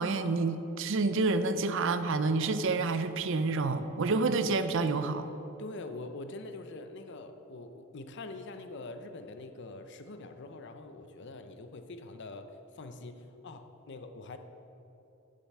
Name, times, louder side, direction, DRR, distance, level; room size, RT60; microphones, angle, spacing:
voice 1, 0.0-5.3, right 3 dB, 65° right, 11 dB, 0.6 m, -28 dB
voice 2, 5.6-14.4, left 2 dB, 60° left, 8 dB, 0.6 m, -44 dB
7.6 x 7.5 x 8.3 m, 2.9 s
head